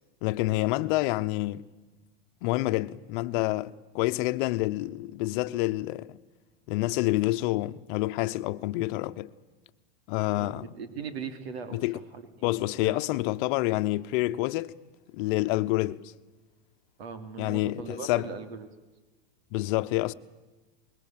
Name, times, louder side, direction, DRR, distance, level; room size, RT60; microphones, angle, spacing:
voice 1, 0.2-1.6 2.4-6.2 6.7-9.3 10.1-10.7 11.7-12.0 12.4-14.7 15.1-16.1 17.4-18.3 19.5-20.1, left 18 dB, 55° left, 1.0 m, -28 dB
voice 2, 10.4-12.5 12.8-13.0 17.0-18.7, right 5 dB, 80° right, 3.0 m, -39 dB
26.0 x 21.5 x 7.6 m
supercardioid pair, 130°, 31 cm